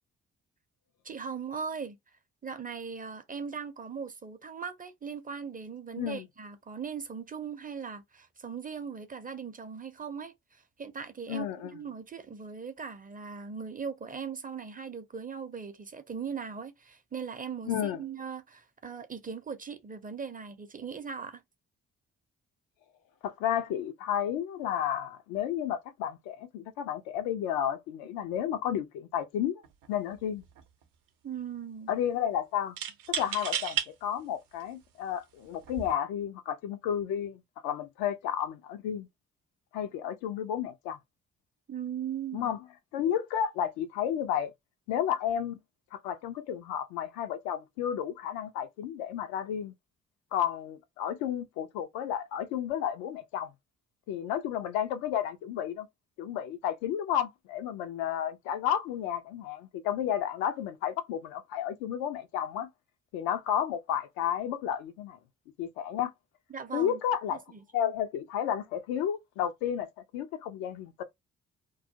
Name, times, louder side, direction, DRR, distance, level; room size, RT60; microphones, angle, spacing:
voice 1, 1.0-2.0 2.4-21.4 31.2-31.9 41.7-42.5 66.5-67.0 67.3-67.9, right 6 dB, 25° right, 0.6 m, -39 dB
voice 2, 11.3-11.7 17.7-18.0 23.2-29.6 29.9-30.4 31.9-32.8 33.1-39.1 39.7-41.0 42.3-42.6 42.9-44.5 44.9-45.6 45.9-49.7 50.3-53.5 54.1-55.9 56.2-62.7 63.1-65.2 65.6-66.1 66.7-67.4 67.7-69.9 70.1-71.0, left 9 dB, 75° left, 0.5 m, -32 dB
sound 1, 29.6-29.9 30.2-30.8 32.8-33.9 34.6-34.7 35.6-35.9, right 9 dB, 70° right, 0.6 m, -33 dB
2.3 x 2.0 x 2.7 m
hypercardioid pair, 45°, 36 cm